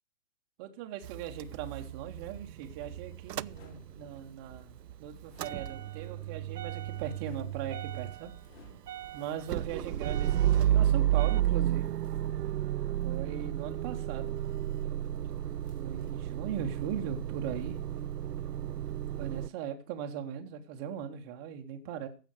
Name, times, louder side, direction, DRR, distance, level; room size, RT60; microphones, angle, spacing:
voice 1, 0.6-4.7 5.0-8.3 9.1-11.9 13.0-14.4 15.7-17.8 19.2-22.1, right 9 dB, 15° right, 4 dB, 0.7 m, -39 dB
Motor vehicle (road) / Engine starting / Idling, 1.0-4.2 4.5-19.5, right 12 dB, 70° right, 0.5 m, -32 dB
sound 1, 2.6-4.5 5.2-6.3 6.7-9.2 9.9-10.0 10.8-12.5 13.8-15.2 15.6-17.2 17.4-18.6 18.9-19.1, left 6 dB, 40° left, 3.4 m, -61 dB
15.0 x 5.9 x 6.4 m, 0.36 s
figure-of-eight pair, 130°, 49 cm